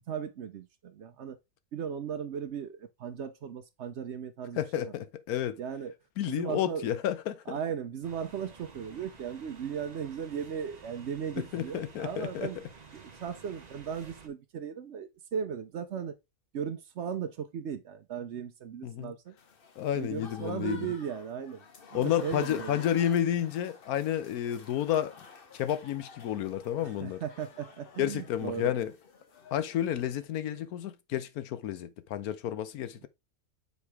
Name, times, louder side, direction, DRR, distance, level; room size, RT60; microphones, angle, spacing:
voice 1, 0.1-1.4 1.7-4.9 5.6-5.9 6.3-6.9 7.5-12.6 12.9-16.1 16.5-19.4 19.9-21.6 21.9-22.9 26.8-28.8, right 7 dB, 65° right, 0.7 m, -37 dB
voice 2, 4.6-5.6 6.2-7.4 11.4-12.5 18.8-19.1 19.8-20.9 21.9-25.2 25.5-27.2 28.0-28.9 29.5-33.1, left 10 dB, 65° left, 1.1 m, -31 dB
sound 1, 8.0-14.3, right 5 dB, 30° right, 0.9 m, -52 dB
Applause / Crowd, 19.4-30.3, left 4 dB, 40° left, 0.9 m, -51 dB
6.8 x 4.8 x 3.4 m
omnidirectional pair, 1.8 m